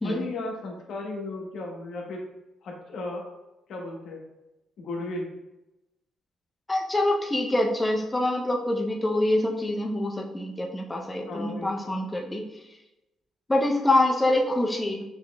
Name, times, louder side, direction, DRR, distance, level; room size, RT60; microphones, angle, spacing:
voice 1, 0.0-2.2 2.6-3.2 3.7-4.2 4.8-5.3 11.3-12.0, left 2 dB, 70° left, 0 dB, 1.0 m, -35 dB
voice 2, 6.7-12.5 13.5-15.0, left 1 dB, 15° left, 1 dB, 0.5 m, -25 dB
6.1 x 3.0 x 2.2 m, 0.97 s
cardioid pair, 90°, 0 cm